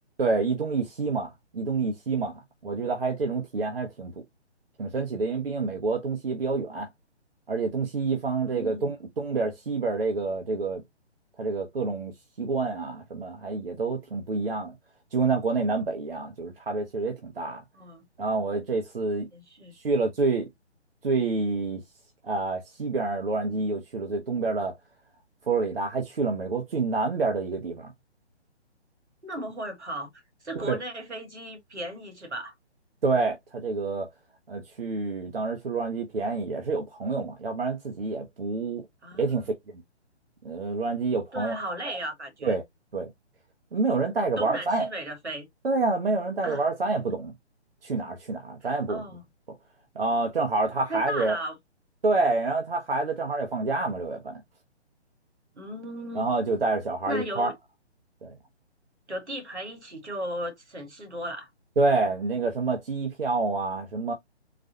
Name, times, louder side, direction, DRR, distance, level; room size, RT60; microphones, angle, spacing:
voice 1, 0.2-4.1 4.8-6.9 7.5-10.8 11.4-12.1 12.4-14.7 15.1-17.6 18.2-19.3 19.8-20.5 21.0-21.8 22.2-24.8 25.5-27.9 30.6-30.8 33.0-34.1 34.5-38.8 39.2-39.5 40.4-41.6 42.4-42.6 42.9-43.1 43.7-44.9 45.6-47.3 47.8-49.0 50.0-51.4 52.0-54.4 56.1-57.5 58.2-58.3 61.8-64.1, right 3 dB, 55° right, 0.8 m, -27 dB
voice 2, 8.5-8.9 17.7-18.0 19.3-19.8 29.2-30.1 30.4-32.6 39.0-39.5 41.3-42.6 44.4-45.5 46.4-46.7 48.6-49.2 50.9-51.6 55.6-56.3 57.1-57.5 59.1-61.5, right 1 dB, 75° right, 1.8 m, -36 dB
4.1 x 2.3 x 2.7 m
figure-of-eight pair, 140°, 34 cm